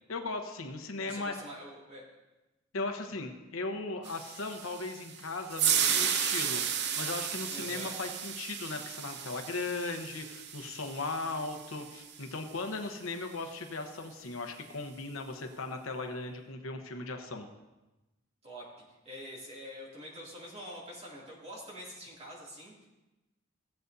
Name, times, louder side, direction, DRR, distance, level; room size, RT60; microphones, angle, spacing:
voice 1, 0.1-1.3 2.7-17.5, left 3 dB, 80° left, 5 dB, 1.0 m, -37 dB
voice 2, 1.0-2.0 7.5-8.0 18.4-18.7 19.0-22.9, equal, 30° right, -5 dB, 2.5 m, -45 dB
sound 1, 4.0-12.3, right 8 dB, 55° right, 0.6 m, -34 dB
16.0 x 7.8 x 2.7 m, 1.0 s
head